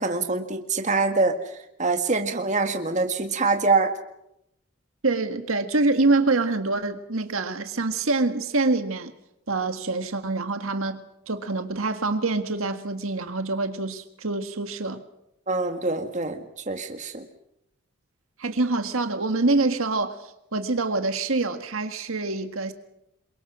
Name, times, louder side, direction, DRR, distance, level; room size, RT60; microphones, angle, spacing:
voice 1, 0.0-1.4 1.8-3.9 15.5-17.3, right 3 dB, 35° right, 5 dB, 1.9 m, -24 dB
voice 2, 5.0-9.1 9.5-15.0 18.4-22.7, right 3 dB, 70° right, 7 dB, 1.7 m, -25 dB
28.0 x 23.0 x 6.2 m, 0.83 s
head